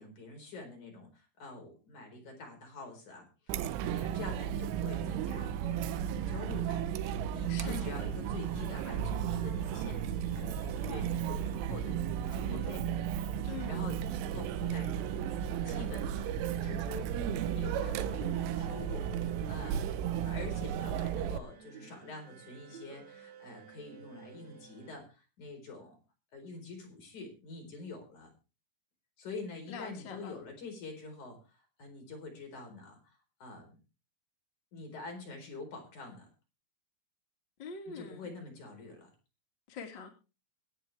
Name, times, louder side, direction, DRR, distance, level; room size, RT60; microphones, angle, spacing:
voice 1, 0.0-5.6 5.9-6.8 7.1-12.9 13.7-15.1 15.7-26.0 26.3-28.3 29.2-33.8 34.7-36.3 37.9-39.1, left 3 dB, 40° left, 3 dB, 5.2 m, -46 dB
Chatter, 3.5-21.4, right 9 dB, 80° right, 3.2 m, -34 dB
voice 2, 7.5-7.8 13.5-13.8 29.7-30.3 37.6-38.2 39.7-40.1, left 5 dB, 65° left, 3 dB, 1.1 m, -43 dB
sound 1, 7.6-25.0, right 6 dB, 40° right, 3.1 m, -52 dB
23.5 x 8.4 x 3.4 m, 0.32 s
omnidirectional pair, 5.8 m